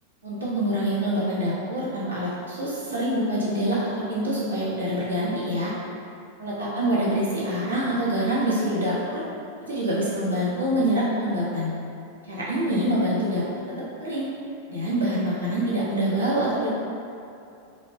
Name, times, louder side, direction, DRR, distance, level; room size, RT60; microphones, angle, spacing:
voice 1, 0.2-5.7 6.4-9.2 9.7-11.7 12.3-13.4 14.0-14.3 14.7-16.7, right 1 dB, 75° right, -8 dB, 1.1 m, -25 dB
4.1 x 2.7 x 3.3 m, 2.6 s
figure-of-eight pair, 90°, 0 cm